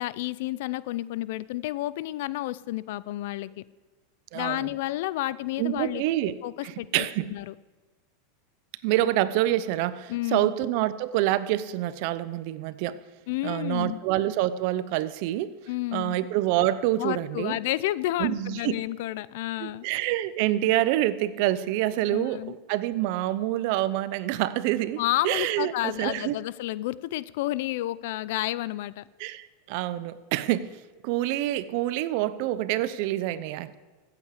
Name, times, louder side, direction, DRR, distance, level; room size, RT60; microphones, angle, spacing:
voice 1, 0.0-3.6 4.3-7.1 7.3-7.5 10.1-10.5 13.3-14.0 15.7-16.2 17.0-19.9 22.1-22.5 25.0-29.1, left 16 dB, 65° left, 19 dB, 0.4 m, -31 dB
voice 2, 4.3-4.7 5.6-6.3 6.6-7.3 8.8-13.0 13.4-15.6 15.9-17.6 18.2-18.8 19.6-26.4 29.2-30.7 31.0-33.7, right 14 dB, 60° right, 15 dB, 0.6 m, -27 dB
15.0 x 8.3 x 4.9 m, 1.3 s
supercardioid pair, 135°, 0 cm